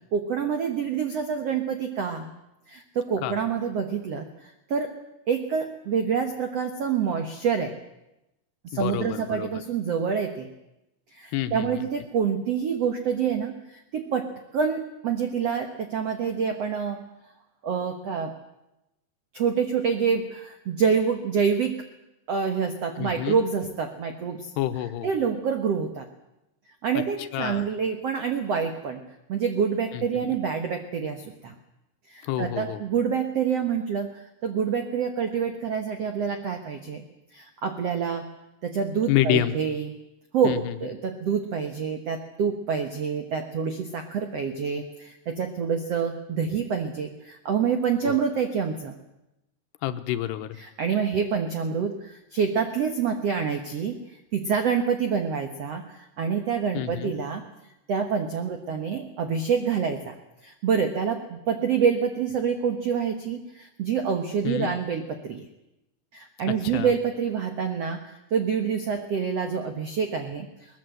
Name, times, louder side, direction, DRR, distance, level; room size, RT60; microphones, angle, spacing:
voice 1, 0.1-2.3 2.7-4.9 5.3-7.7 8.6-10.5 11.1-17.0 17.6-18.3 19.3-21.8 22.3-24.5 25.0-26.1 26.8-29.0 29.3-31.5 32.1-37.0 37.3-38.2 38.6-39.9 40.3-48.9 50.6-54.0 54.3-57.4 57.9-60.1 60.4-65.5 66.1-70.8, right 6 dB, 75° right, 6 dB, 1.4 m, -27 dB
voice 2, 8.7-9.5 11.3-11.9 23.0-23.4 24.6-25.1 27.2-27.7 29.9-30.0 32.2-32.8 39.1-39.5 40.4-40.7 48.0-48.2 49.8-50.6 56.7-57.1 64.4-64.7 66.6-66.9, left 12 dB, 80° left, 10 dB, 3.0 m, -28 dB
21.5 x 19.5 x 7.8 m, 0.93 s
omnidirectional pair, 4.9 m